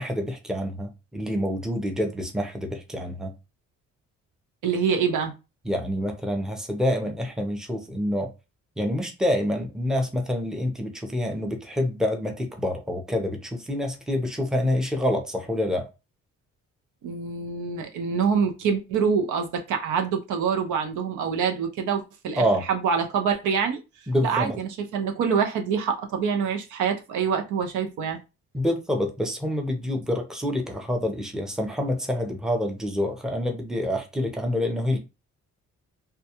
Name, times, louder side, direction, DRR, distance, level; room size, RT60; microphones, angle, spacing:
voice 1, 0.0-3.3 5.7-8.3 8.8-15.9 22.4-22.6 24.1-24.6 28.5-35.0, left 1 dB, ahead, 0.6 m, -27 dB
voice 2, 4.6-5.3 17.0-22.4 22.7-23.8 24.2-28.2, right 6 dB, 80° right, 0.6 m, -25 dB
2.2 x 2.2 x 2.8 m
cardioid pair, 90°, 30 cm